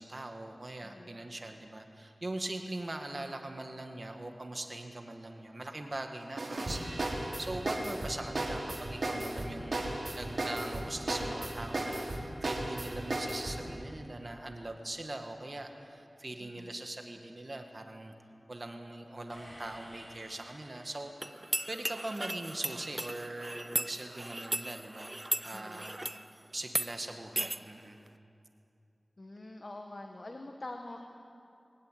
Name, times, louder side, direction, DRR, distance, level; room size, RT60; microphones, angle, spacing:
voice 1, 0.0-18.1 18.5-21.3 21.7-26.0 26.5-28.0, right 2 dB, 45° right, 4 dB, 2.0 m, -41 dB
voice 2, 0.8-1.2 16.4-16.7 25.5-25.8 29.2-31.0, left 2 dB, 50° left, 3 dB, 1.5 m, -45 dB
sound 1, 6.4-13.6, right 2 dB, 65° right, 3.6 m, -35 dB
sound 2, 19.3-21.5, equal, 30° left, 7.2 m, -53 dB
sound 3, 21.2-26.2 26.7-26.9 27.4-27.6, right 1 dB, 30° right, 0.8 m, -36 dB
23.0 x 15.5 x 9.4 m, 2.6 s
wide cardioid pair, 60°, 0 cm